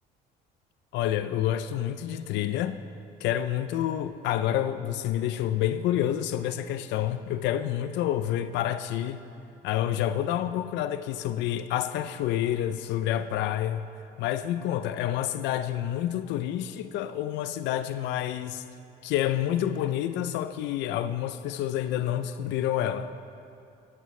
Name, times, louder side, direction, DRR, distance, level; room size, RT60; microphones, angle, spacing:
voice 1, 0.9-2.8 3.2-9.2 9.6-13.8 14.2-18.6 19.0-23.1, left 11 dB, 80° left, 11 dB, 0.6 m, -28 dB
16.5 x 14.0 x 3.2 m, 2.6 s
cardioid pair, 115°, 18 cm